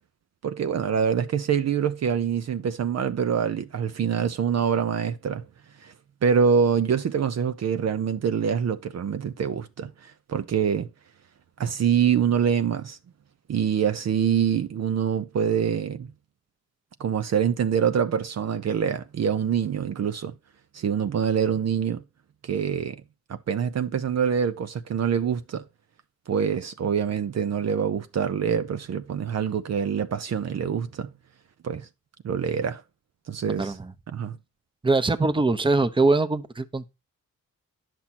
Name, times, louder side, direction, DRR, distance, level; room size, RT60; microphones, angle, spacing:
voice 1, 0.4-5.5 5.8-5.9 6.2-10.9 11.6-13.0 13.5-16.1 17.0-20.3 20.7-22.0 22.4-23.0 23.3-25.6 26.3-31.1 31.6-31.9 32.2-32.8 33.3-33.7 34.1-34.4, right 7 dB, 50° right, 0.7 m, -25 dB
voice 2, 33.6-33.9 34.8-36.9, right 3 dB, 15° right, 0.9 m, -22 dB
10.0 x 6.0 x 4.2 m
cardioid pair, 80°, 32 cm